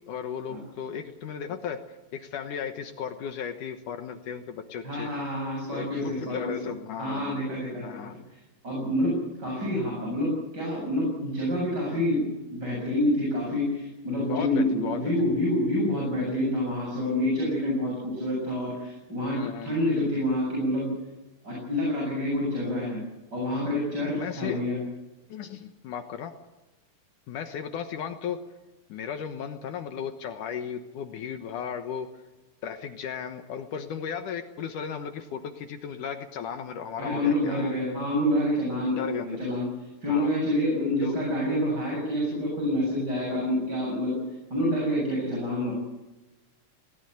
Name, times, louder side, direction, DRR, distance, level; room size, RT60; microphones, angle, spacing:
voice 1, 0.1-1.8 2.1-5.1 5.7-7.4 7.8-8.2 14.3-15.3 19.2-19.8 24.2-24.6 25.3-26.3 27.3-28.4 28.9-32.1 32.6-37.7 38.9-39.3 40.1-40.3 41.0-41.2, left 7 dB, 70° left, 8 dB, 2.6 m, -35 dB
voice 2, 4.8-6.6 7.0-8.1 8.6-21.0 21.4-23.0 23.3-24.8 37.0-39.7 40.0-44.2 44.5-45.7, left 1 dB, 30° right, -3 dB, 8.2 m, -27 dB
20.0 x 19.0 x 9.4 m, 1.1 s
omnidirectional pair, 3.9 m